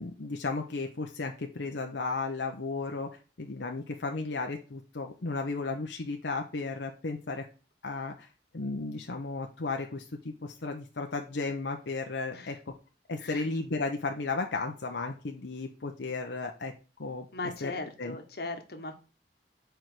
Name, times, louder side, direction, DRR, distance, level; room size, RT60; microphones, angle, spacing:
voice 1, 0.0-3.1 3.4-7.5 7.8-8.3 8.5-12.7 13.1-16.7 17.0-17.3 17.6-17.7 18.0-18.2, left 3 dB, 85° left, 3 dB, 0.8 m, -34 dB
voice 2, 17.3-19.0, left 2 dB, 60° left, 5 dB, 1.3 m, -38 dB
5.0 x 4.7 x 5.9 m, 0.35 s
head